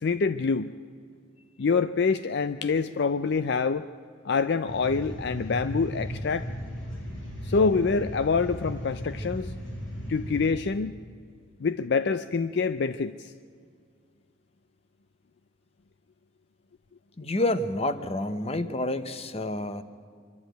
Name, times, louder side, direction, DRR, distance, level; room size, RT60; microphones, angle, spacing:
voice 1, 0.0-0.7 1.6-3.9 4.2-6.5 7.4-9.5 10.1-11.0 11.6-13.3, left 4 dB, 55° left, 13 dB, 0.4 m, -26 dB
sound 1, 4.7-10.4, equal, 80° left, 5.2 m, -36 dB
voice 2, 17.2-19.8, left 1 dB, 30° left, 12 dB, 0.8 m, -28 dB
24.5 x 12.0 x 9.2 m, 2.2 s
head